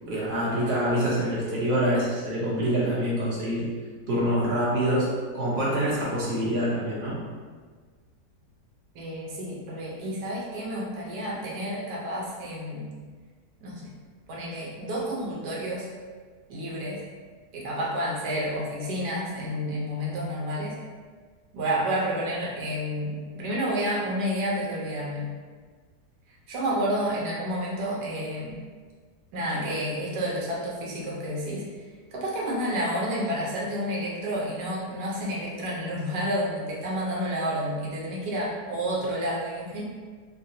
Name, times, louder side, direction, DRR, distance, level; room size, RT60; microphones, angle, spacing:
voice 1, 0.0-3.7 4.1-7.2, equal, 45° right, -7 dB, 0.9 m, -26 dB
voice 2, 8.9-12.9 13.6-13.9 14.3-15.9 16.5-17.0 17.5-20.8 21.5-25.3 26.5-28.6 29.3-31.7 32.1-39.8, equal, 80° right, -4 dB, 1.3 m, -30 dB
3.8 x 2.2 x 2.7 m, 1.5 s
omnidirectional pair, 1.8 m